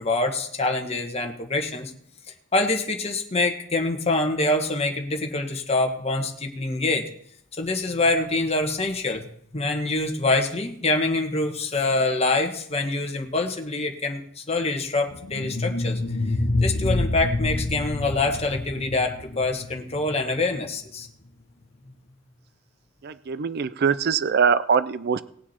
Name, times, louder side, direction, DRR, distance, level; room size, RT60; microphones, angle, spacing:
voice 1, 0.0-1.9 2.5-7.1 7.6-9.3 9.5-16.0 16.6-21.1, left 2 dB, 30° left, 3 dB, 1.3 m, -25 dB
sound 1, 15.1-20.2, left 2 dB, 65° left, 1.0 m, -27 dB
voice 2, 23.0-25.2, right 6 dB, 50° right, 15 dB, 0.4 m, -22 dB
19.0 x 7.3 x 4.3 m, 0.66 s
head